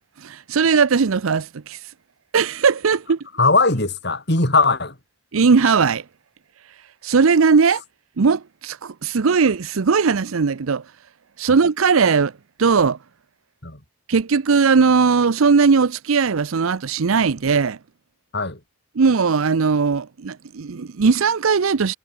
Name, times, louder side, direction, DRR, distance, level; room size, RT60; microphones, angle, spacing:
voice 1, 0.2-1.9 2.3-3.2 5.3-6.0 7.0-7.8 8.2-10.8 11.4-12.3 12.6-13.0 14.1-17.8 19.0-22.0, right 5 dB, 80° right, 0.6 m, -18 dB
voice 2, 3.4-5.0 11.5-11.6 13.6-13.8 18.3-18.6, left 3 dB, 55° left, 5.3 m, -19 dB
head